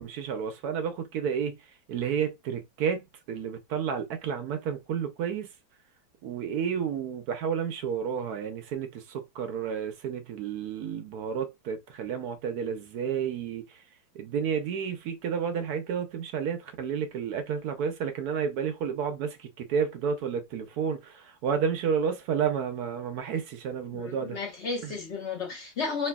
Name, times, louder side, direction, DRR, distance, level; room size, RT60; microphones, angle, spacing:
voice 1, 0.0-5.5 6.2-13.8 14.1-24.4 24.8-24.9, right 7 dB, 75° right, 0.9 m, -31 dB
voice 2, 23.9-26.1, left 4 dB, 70° left, 0.6 m, -33 dB
3.2 x 2.8 x 2.2 m
omnidirectional pair, 2.1 m